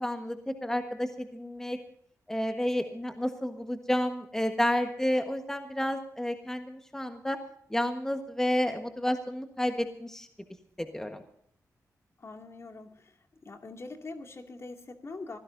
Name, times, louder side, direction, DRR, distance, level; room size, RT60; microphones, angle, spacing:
voice 1, 0.0-1.8 2.3-7.4 7.7-10.3 10.8-11.2, left 1 dB, 5° left, 5 dB, 1.4 m, -30 dB
voice 2, 12.2-13.2 13.4-15.4, left 3 dB, 45° left, 4 dB, 2.5 m, -43 dB
24.5 x 16.0 x 2.7 m, 0.67 s
wide cardioid pair, 95°, 6 cm